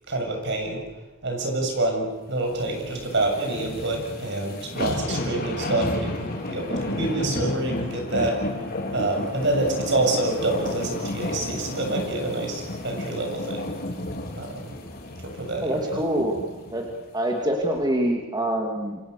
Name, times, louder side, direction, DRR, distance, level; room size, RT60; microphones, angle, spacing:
voice 1, 0.1-0.8 1.2-8.4 8.9-13.8 14.4-14.7 15.2-16.0, right 2 dB, 60° right, 3 dB, 7.2 m, -27 dB
sound 1, 2.5-16.9 17.4-17.5, left 1 dB, 50° left, 5.1 m, -32 dB
voice 2, 15.6-16.4 16.7-16.9 17.1-19.0, right 1 dB, 20° right, 1 dB, 2.8 m, -25 dB
28.5 x 25.5 x 6.8 m, 1.1 s
head